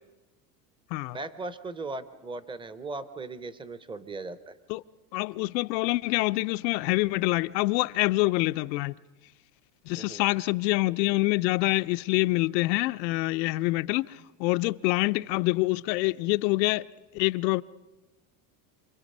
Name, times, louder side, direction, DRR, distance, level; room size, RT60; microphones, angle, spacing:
voice 1, 1.1-4.6 10.0-10.2, right 3 dB, 10° right, 0.6 m, -38 dB
voice 2, 5.1-8.9 9.9-16.9 17.1-17.6, left 21 dB, 85° left, 0.7 m, -26 dB
27.5 x 22.5 x 5.4 m
supercardioid pair, 140°, 50 cm